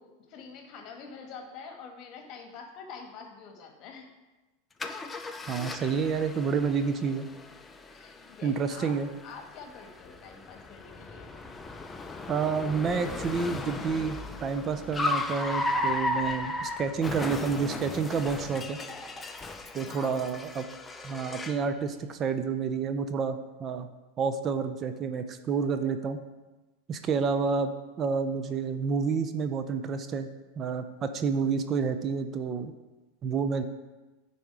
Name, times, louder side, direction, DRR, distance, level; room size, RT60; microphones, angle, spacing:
voice 1, 0.0-4.1 7.9-9.0 9.2-11.3 19.8-20.2, left 5 dB, 45° left, 4 dB, 1.5 m, -46 dB
Car, 4.8-21.7, left 2 dB, 15° left, 0.6 m, -36 dB
voice 2, 5.5-7.3 8.4-9.1 12.3-18.8 19.7-20.7 21.0-23.9 24.2-26.2 26.9-27.7 28.0-30.3 30.6-32.7 33.2-33.6, right 5 dB, 35° right, 9 dB, 0.6 m, -29 dB
9.5 x 4.2 x 4.8 m, 1.1 s
hypercardioid pair, 100°, 0 cm